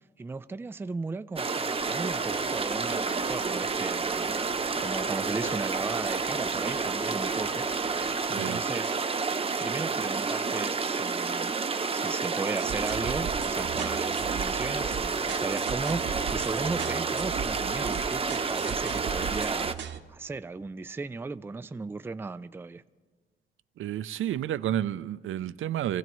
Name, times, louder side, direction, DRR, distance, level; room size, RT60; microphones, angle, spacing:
voice 1, 0.2-4.4 4.7-9.0 9.6-11.5 11.9-19.7 20.1-22.8, right 3 dB, 10° right, 0.3 m, -36 dB
sound 1, 1.4-19.7, right 4 dB, 25° right, 0.8 m, -30 dB
sound 2, 1.8-8.2, left 4 dB, 75° left, 1.3 m, -45 dB
voice 2, 8.3-8.6 23.8-26.0, right 11 dB, 75° right, 0.5 m, -30 dB
sound 3, 12.6-20.0, right 7 dB, 60° right, 0.9 m, -38 dB
26.5 x 16.0 x 3.1 m
cardioid pair, 110°, 21 cm